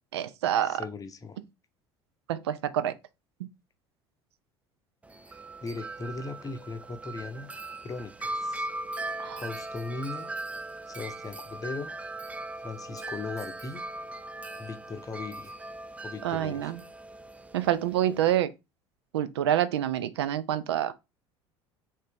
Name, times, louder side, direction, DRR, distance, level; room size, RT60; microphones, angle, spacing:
voice 1, 0.1-0.8 2.3-2.9 9.2-9.4 16.2-16.8 17.5-18.5 19.1-20.9, right 11 dB, 85° right, 0.4 m, -27 dB
voice 2, 0.6-1.4 5.6-7.5 7.8-8.7 9.4-10.3 10.9-11.9 12.6-13.8 14.6-15.6 16.0-16.7, left 3 dB, 25° left, 0.6 m, -38 dB
Wind chime, 5.0-18.4, right 2 dB, 10° right, 0.3 m, -39 dB
3.7 x 2.6 x 3.7 m
hypercardioid pair, 70°, 13 cm